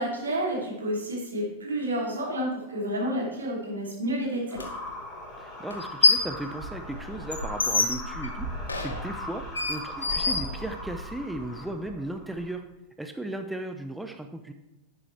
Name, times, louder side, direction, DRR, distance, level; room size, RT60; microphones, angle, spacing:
voice 1, 0.0-4.6, equal, 70° right, -3 dB, 2.9 m, -30 dB
sound 1, 4.5-12.5, equal, 20° left, 3.6 m, -39 dB
sound 2, 4.6-4.7 5.7-6.4 6.7-11.1, left 4 dB, 75° left, 1.0 m, -27 dB
voice 2, 5.4-8.5 8.8-12.6 13.0-14.5, right 1 dB, 5° right, 6 dB, 0.6 m, -36 dB
11.0 x 8.1 x 3.3 m, 0.97 s
figure-of-eight pair, 90°, 0 cm